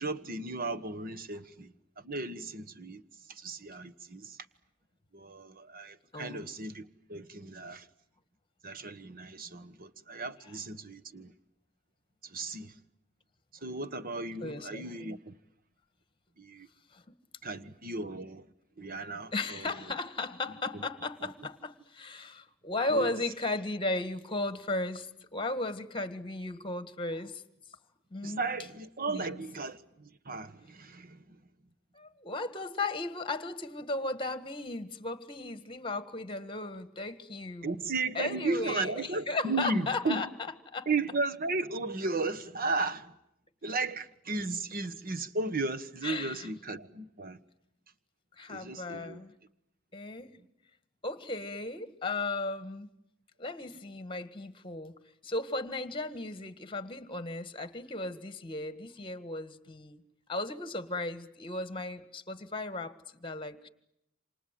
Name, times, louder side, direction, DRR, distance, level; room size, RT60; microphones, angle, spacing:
voice 1, 0.0-3.0 3.3-4.4 5.1-7.9 8.6-11.3 12.2-12.7 13.6-15.3 16.4-16.7 17.4-18.4 18.8-19.9 20.7-20.8 22.9-23.1 28.2-31.4 37.6-40.2 40.9-43.1 43.6-47.4 48.5-49.2, right 3 dB, 45° right, 1.3 m, -35 dB
voice 2, 6.1-6.5 10.4-10.5 14.4-15.2 16.9-17.0 19.3-27.4 28.1-28.5 29.1-29.4 31.9-37.8 38.1-40.3 40.7-40.9 46.0-46.5 48.4-49.3 49.9-50.3 51.0-52.9 53.4-55.0 55.2-60.0 60.3-63.7, left 2 dB, 25° left, 1.7 m, -36 dB
28.5 x 26.5 x 7.6 m
head